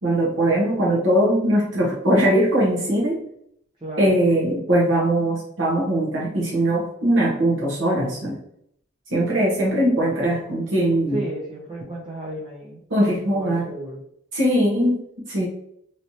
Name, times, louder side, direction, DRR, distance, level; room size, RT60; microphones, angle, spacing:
voice 1, 0.0-3.2 4.0-8.4 9.1-11.2 12.9-13.7 14.3-15.5, right 1 dB, 75° right, -5 dB, 1.1 m, -21 dB
voice 2, 3.8-4.2 11.1-14.0, right 1 dB, 25° right, -5 dB, 0.6 m, -34 dB
3.1 x 2.9 x 2.7 m, 0.71 s
head